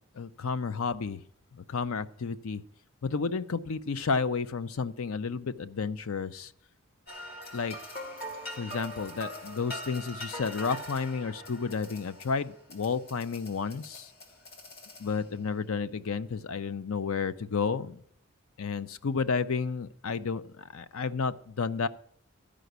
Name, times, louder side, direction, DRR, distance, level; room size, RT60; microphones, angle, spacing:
voice 1, 0.1-1.2 1.5-2.6 3.0-6.5 7.5-7.8 8.6-14.1 15.0-18.0 18.6-21.9, left 5 dB, 70° left, 14 dB, 0.6 m, -31 dB
sound 1, 7.1-15.4, equal, 45° left, 2.1 m, -43 dB
12.5 x 5.1 x 8.0 m, 0.66 s
head